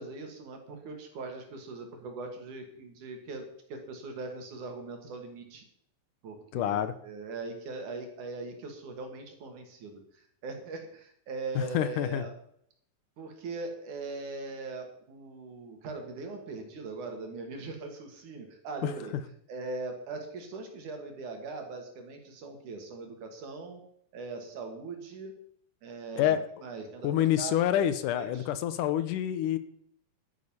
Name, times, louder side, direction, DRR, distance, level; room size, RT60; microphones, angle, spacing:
voice 1, 0.0-5.6 6.2-12.3 13.2-19.1 19.5-23.8 24.1-25.3 25.8-26.4 26.6-27.8 28.1-28.5, right 3 dB, 70° right, 4 dB, 3.6 m, -40 dB
voice 2, 6.5-6.9 11.6-12.2 18.8-18.9 26.2-26.5 27.0-29.6, left 11 dB, 85° left, 13 dB, 2.4 m, -27 dB
11.5 x 9.7 x 5.6 m, 0.68 s
omnidirectional pair, 3.7 m